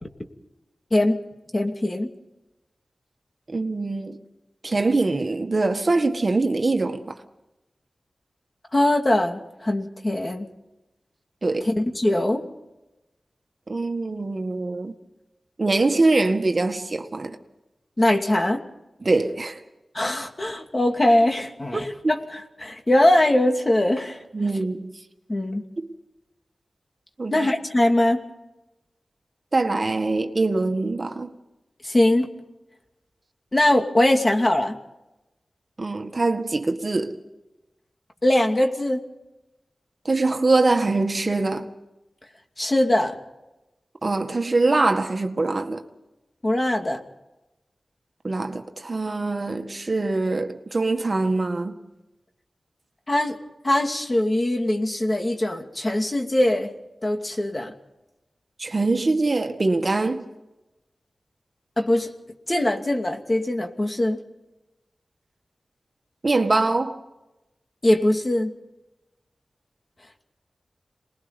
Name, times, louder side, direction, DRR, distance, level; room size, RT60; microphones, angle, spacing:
voice 1, 1.5-2.1 8.7-10.5 11.6-12.4 18.0-18.6 19.9-24.2 25.3-25.6 27.3-28.2 31.8-32.3 33.5-34.8 38.2-39.0 42.6-43.2 46.4-47.0 53.1-53.4 53.6-56.7 57.0-57.7 61.8-62.1 62.5-64.2 67.8-68.5, left 1 dB, 35° left, 2.7 m, -21 dB
voice 2, 3.5-4.2 4.6-7.2 11.4-11.7 13.7-14.9 15.6-17.4 19.0-19.6 22.0-22.1 24.3-24.9 25.8-25.9 27.2-27.5 29.5-31.3 35.8-37.2 40.1-41.7 44.0-45.8 48.2-51.8 58.6-60.2 66.2-67.0, right 3 dB, 45° right, 1.8 m, -23 dB
27.5 x 21.0 x 5.4 m
cardioid pair, 55°, 0 cm